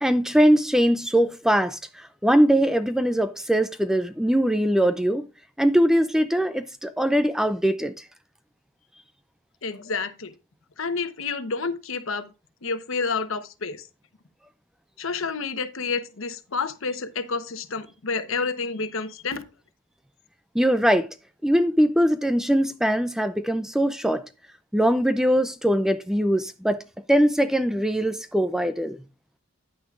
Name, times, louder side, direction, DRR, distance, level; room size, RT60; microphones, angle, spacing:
voice 1, 0.0-5.2 5.6-8.1 20.5-21.1 21.4-24.3 24.7-26.8 27.1-29.0, equal, ahead, 0.4 m, -21 dB
voice 2, 9.6-10.3 10.8-12.3 12.6-13.9 15.0-19.4, left 4 dB, 75° left, 1.0 m, -29 dB
10.0 x 9.1 x 2.4 m
head